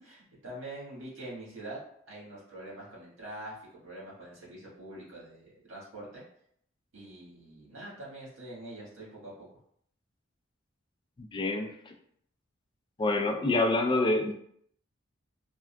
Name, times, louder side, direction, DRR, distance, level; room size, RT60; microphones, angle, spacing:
voice 1, 0.0-1.8 2.1-3.6 3.8-6.2 6.9-9.5, right 1 dB, 85° right, -5 dB, 1.5 m, -44 dB
voice 2, 11.2-11.9 13.0-14.3, left 2 dB, 25° left, 3 dB, 0.3 m, -27 dB
3.5 x 2.3 x 2.2 m, 0.68 s
head